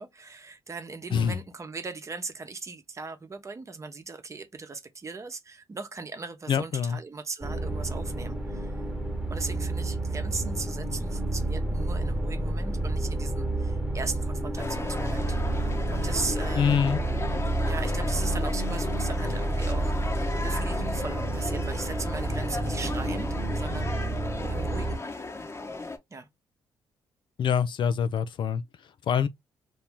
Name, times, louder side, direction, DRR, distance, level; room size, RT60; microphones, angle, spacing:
voice 1, 0.0-8.8 9.3-15.4 15.9-16.8 17.7-24.0 24.3-25.0 26.1-26.3, right 4 dB, 35° right, 0.9 m, -38 dB
voice 2, 6.5-7.0 16.6-17.0 27.4-29.3, left 7 dB, 60° left, 0.4 m, -25 dB
sound 1, 7.4-25.0, right 1 dB, 5° right, 1.1 m, -30 dB
sound 2, 14.6-26.0, left 2 dB, 30° left, 1.0 m, -36 dB
sound 3, 15.1-18.8 19.1-19.2, right 7 dB, 90° right, 0.6 m, -46 dB
2.9 x 2.7 x 3.5 m
cardioid pair, 75°, 9 cm